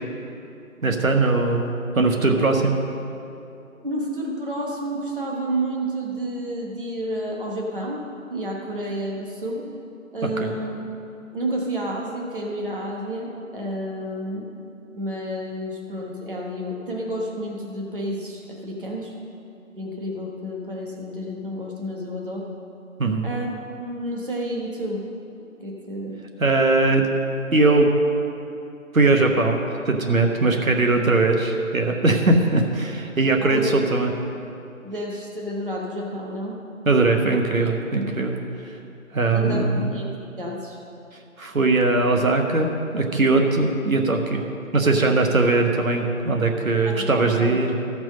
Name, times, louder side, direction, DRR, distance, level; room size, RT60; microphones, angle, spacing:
voice 1, 0.8-1.7 1.9-2.7 10.4-10.5 23.0-23.2 26.4-27.1 27.5-27.9 28.9-29.6 29.9-34.1 36.9-38.4 39.1-39.9 41.4-44.4 44.7-47.7, right 3 dB, 70° right, 2 dB, 1.3 m, -20 dB
voice 2, 3.8-8.0 8.3-9.7 10.1-10.8 11.3-14.5 14.9-19.1 19.7-22.5 23.2-25.0 25.6-26.2 33.2-33.6 34.8-36.6 39.3-40.1 40.4-40.8 46.8-47.6, right 1 dB, 40° right, -2 dB, 1.3 m, -30 dB
13.5 x 6.1 x 6.4 m, 2.7 s
figure-of-eight pair, 175°, 42 cm